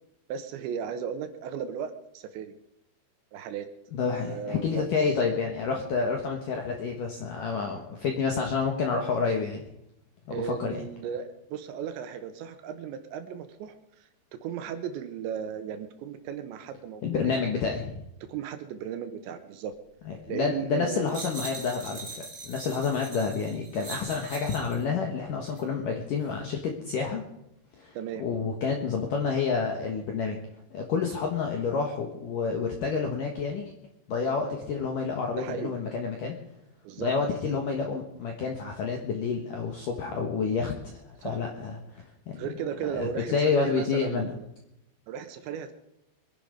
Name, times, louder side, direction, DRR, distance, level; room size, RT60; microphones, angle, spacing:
voice 1, 0.3-2.5 3.3-3.7 4.1-4.9 10.3-17.3 18.2-19.8 20.3-21.2 27.9-28.2 34.5-34.9 35.4-35.8 36.8-37.1 41.2-41.4 42.4-44.5 45.1-45.7, right 8 dB, 75° right, 9 dB, 3.1 m, -36 dB
voice 2, 3.9-9.6 10.3-10.8 17.0-17.9 20.1-27.2 27.8-30.4 30.7-33.7 34.1-36.4 37.0-42.5 42.9-44.3, left 5 dB, 70° left, 2 dB, 2.1 m, -29 dB
sound 1, 21.1-24.8 25.5-25.6, right 3 dB, 15° right, 1.8 m, -41 dB
23.5 x 10.5 x 5.2 m, 0.82 s
omnidirectional pair, 5.8 m